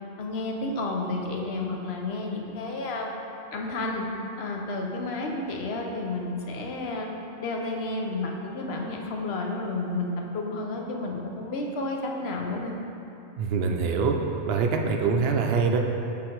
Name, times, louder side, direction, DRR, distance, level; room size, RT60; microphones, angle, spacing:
voice 1, 0.2-3.1 3.5-4.1 4.4-7.1 7.4-12.7, left 2 dB, 70° left, 1 dB, 0.9 m, -31 dB
voice 2, 13.4-14.2 14.5-15.8, right 5 dB, 70° right, 2 dB, 0.8 m, -24 dB
6.1 x 3.8 x 4.5 m, 2.8 s
omnidirectional pair, 1.1 m